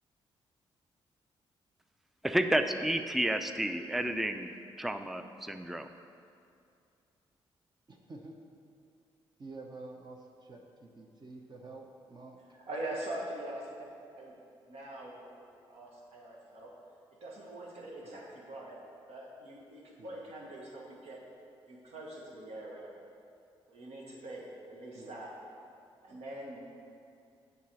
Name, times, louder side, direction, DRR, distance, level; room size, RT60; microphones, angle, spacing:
voice 1, 2.2-5.9, right 1 dB, ahead, 8 dB, 0.4 m, -31 dB
voice 2, 7.9-8.3 9.4-12.4 18.0-18.2 20.0-20.2 24.9-25.1 26.1-26.2, right 3 dB, 40° right, 1 dB, 0.8 m, -49 dB
voice 3, 12.5-13.9 14.2-14.3 14.7-15.3 15.7-16.7 17.1-21.3 21.7-22.9 23.7-25.3 26.0-26.7, right 1 dB, 75° right, -2 dB, 1.4 m, -43 dB
7.2 x 4.0 x 6.1 m, 2.5 s
supercardioid pair, 55°, 11 cm